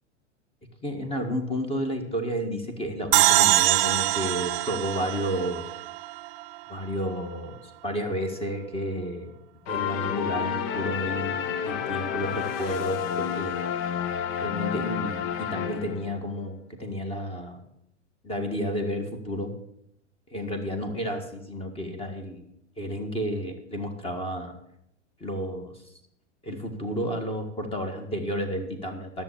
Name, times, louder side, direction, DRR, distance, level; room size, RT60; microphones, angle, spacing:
voice 1, 0.8-5.6 6.7-9.4 9.7-13.5 14.4-17.6 18.2-19.5 20.3-22.5 22.8-24.5 25.2-25.8 26.4-29.2, equal, 15° left, 6 dB, 1.8 m, -31 dB
sound 1, 3.1-6.4, right 17 dB, 50° right, 0.6 m, -23 dB
sound 2, 9.7-16.2, left 8 dB, 45° left, 0.8 m, -30 dB
10.5 x 7.2 x 8.5 m, 0.77 s
hypercardioid pair, 125°, 35 cm